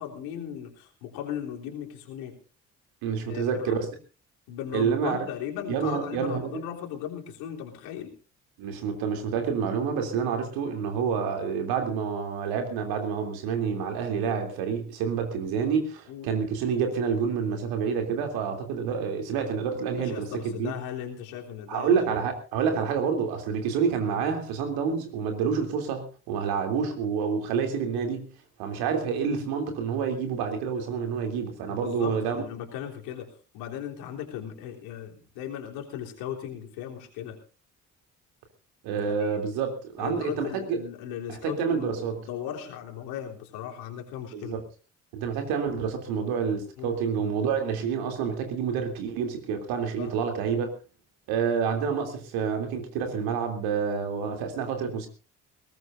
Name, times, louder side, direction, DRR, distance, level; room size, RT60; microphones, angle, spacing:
voice 1, 0.0-2.4 3.3-3.7 4.5-8.1 16.1-16.3 19.9-22.2 31.7-37.4 38.9-39.4 40.0-44.6 46.8-47.0 50.0-50.2, left 9 dB, 70° left, 2 dB, 3.6 m, -37 dB
voice 2, 3.0-3.8 4.7-5.3 5.7-6.6 8.6-20.7 21.7-28.3 28.6-32.4 38.8-40.8 41.3-42.2 44.3-44.6 45.1-50.7 51.3-55.1, right 6 dB, 70° right, 5 dB, 3.2 m, -28 dB
21.0 x 19.0 x 2.6 m, 0.35 s
figure-of-eight pair, 45°, 39 cm